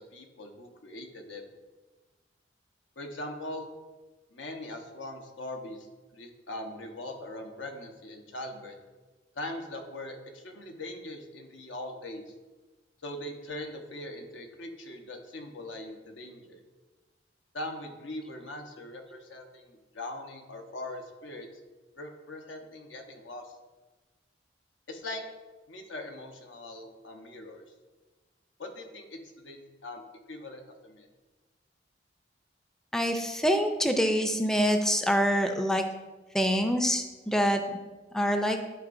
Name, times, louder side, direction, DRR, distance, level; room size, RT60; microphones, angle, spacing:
voice 1, 0.1-1.4 3.0-3.7 4.3-5.9 6.1-8.8 9.3-12.3 13.0-16.6 17.5-21.5 21.9-23.6 24.9-25.2 25.7-27.6 28.6-30.0 30.3-31.1, left 1 dB, 85° left, 3 dB, 1.0 m, -41 dB
voice 2, 32.9-35.9 36.3-37.6 38.1-38.6, equal, 5° left, 5 dB, 0.4 m, -25 dB
11.5 x 4.6 x 2.6 m, 1.2 s
head